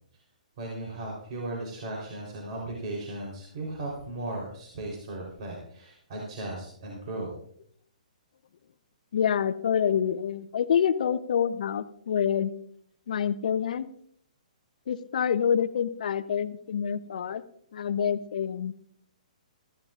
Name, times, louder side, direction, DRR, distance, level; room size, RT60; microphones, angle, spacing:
voice 1, 0.6-7.3, right 2 dB, 50° right, -2 dB, 3.7 m, -36 dB
voice 2, 9.1-12.5 13.1-13.9 14.9-17.4 17.7-18.7, left 8 dB, 65° left, 14 dB, 0.7 m, -27 dB
16.5 x 15.0 x 2.5 m, 0.65 s
hypercardioid pair, 135°, 4 cm